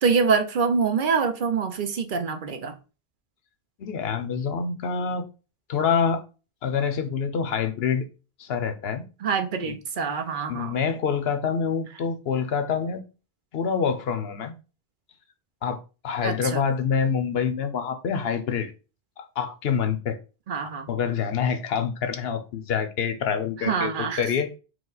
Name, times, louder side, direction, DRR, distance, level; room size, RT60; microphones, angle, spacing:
voice 1, 0.0-2.7 9.2-10.8 16.2-16.6 20.5-20.9 23.6-24.3, right 5 dB, 60° right, 0.7 m, -25 dB
voice 2, 3.8-5.2 5.7-6.2 6.6-8.0 8.4-9.0 9.7-9.8 10.5-13.0 13.5-14.5 15.6-15.8 16.0-18.7 19.2-20.2 20.6-23.9 24.2-24.5, left 6 dB, 80° left, 0.9 m, -26 dB
4.7 x 2.2 x 3.9 m
omnidirectional pair, 1.0 m